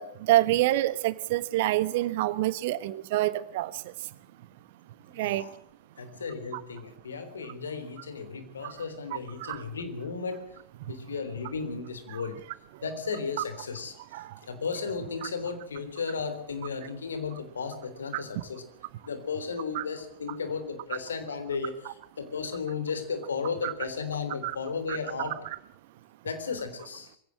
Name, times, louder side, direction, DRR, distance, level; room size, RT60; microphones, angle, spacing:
voice 1, 0.0-3.9 5.1-5.5 8.6-8.7 9.4-9.6 12.1-12.2 12.7-12.8 14.1-14.4 18.1-18.2 19.7-19.8 23.6-23.7 24.4-24.5 24.9-25.3, right 15 dB, 50° right, 16 dB, 1.2 m, -27 dB
voice 2, 5.1-5.5 6.0-10.5 10.9-12.4 12.8-13.9 14.5-18.6 19.0-25.4 26.2-27.1, left 5 dB, 70° left, 9 dB, 3.6 m, -34 dB
22.0 x 16.5 x 7.5 m, 0.65 s
figure-of-eight pair, 90°, 0 cm